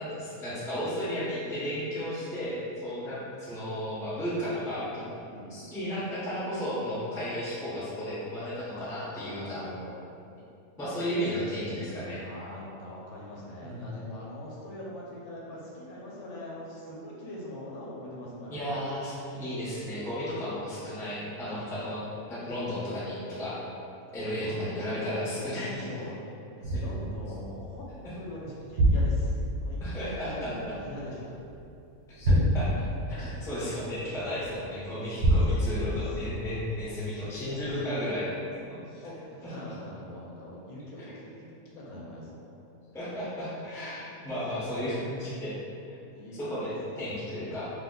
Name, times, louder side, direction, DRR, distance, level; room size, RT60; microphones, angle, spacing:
voice 1, 0.0-5.0 5.5-9.6 10.8-12.2 13.6-13.8 18.5-22.0 22.3-23.6 24.1-25.8 26.6-26.8 29.8-30.5 32.1-32.7 33.1-38.4 38.7-38.8 39.4-39.5 42.9-45.5 46.4-47.7, equal, 5° left, -10 dB, 0.3 m, -34 dB
voice 2, 5.2-5.6 8.7-10.0 12.2-18.8 21.5-21.9 24.2-24.7 25.2-26.3 26.6-31.3 33.1-33.7 35.0-35.1 35.4-36.2 36.9-37.0 37.2-37.8 38.9-42.6 43.0-43.2 44.5-45.3 46.1-46.7, left 1 dB, 80° left, -4 dB, 1.1 m, -43 dB
sound 1, 26.6-31.6 32.2-34.6 35.2-37.2 37.7-37.8, equal, 60° right, 1.1 m, -28 dB
2.7 x 2.1 x 3.7 m, 2.6 s
omnidirectional pair, 1.5 m